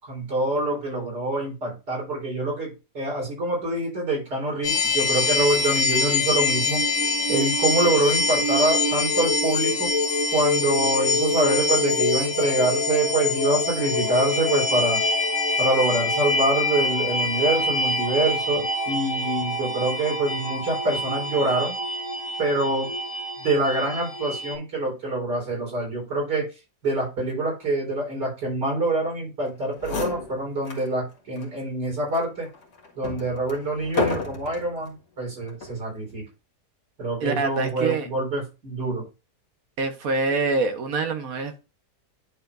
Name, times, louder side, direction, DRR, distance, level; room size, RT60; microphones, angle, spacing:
voice 1, 0.0-6.8 7.3-9.9 10.3-15.0 15.6-21.8 22.4-22.9 23.4-26.5 26.8-32.5 33.0-36.2 37.0-39.1, right 2 dB, 90° right, 4.6 m, -25 dB
sound 1, 4.6-24.5, left 2 dB, 50° left, 1.8 m, -25 dB
sound 2, 29.5-29.6 29.8-30.9 31.4-31.5 32.1-34.7 35.5-35.8, left 3 dB, 80° left, 2.3 m, -31 dB
voice 2, 37.2-38.1 39.8-41.6, right 3 dB, 60° right, 1.4 m, -25 dB
10.5 x 5.0 x 2.5 m
omnidirectional pair, 1.8 m